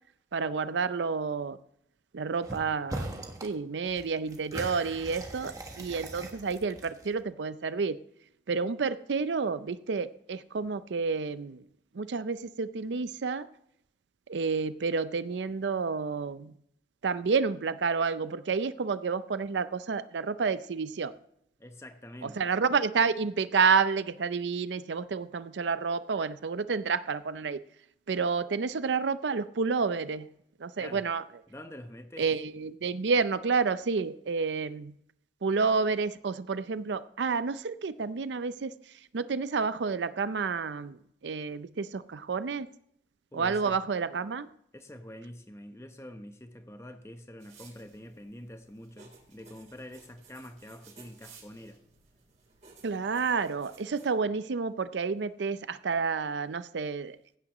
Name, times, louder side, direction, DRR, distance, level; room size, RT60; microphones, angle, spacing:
voice 1, 0.3-1.6 2.1-8.0 8.5-11.6 11.9-13.5 14.3-16.5 17.0-21.2 22.2-27.6 28.1-30.3 30.6-31.2 32.2-34.9 35.4-42.7 43.3-44.5 52.8-57.2, right 5 dB, 90° right, 14 dB, 0.5 m, -30 dB
sound 1, 2.4-2.6 2.9-3.5 3.8-7.2, right 1 dB, 20° right, 1.3 m, -40 dB
voice 2, 21.6-22.4 30.8-31.1 31.5-32.3 43.3-43.8 44.7-51.8, left 1 dB, 15° left, 7 dB, 0.8 m, -46 dB
sound 2, 47.4-54.1, right 4 dB, 40° right, 3.4 m, -56 dB
16.0 x 9.7 x 3.0 m, 0.71 s
head